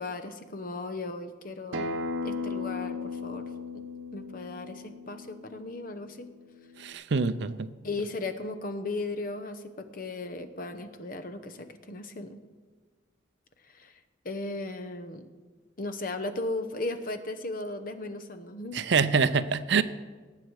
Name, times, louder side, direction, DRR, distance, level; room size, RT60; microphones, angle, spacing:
voice 1, 0.0-1.9 2.2-3.8 4.1-6.3 7.8-12.4 13.7-13.9 14.2-15.3 15.8-18.8, left 2 dB, 45° left, 9 dB, 0.8 m, -36 dB
Acoustic guitar, 1.7-6.9, left 3 dB, 90° right, 0.9 m, -37 dB
voice 2, 6.8-7.7 18.7-19.8, right 5 dB, 65° right, 14 dB, 0.5 m, -25 dB
18.5 x 7.7 x 4.7 m, 1.4 s
head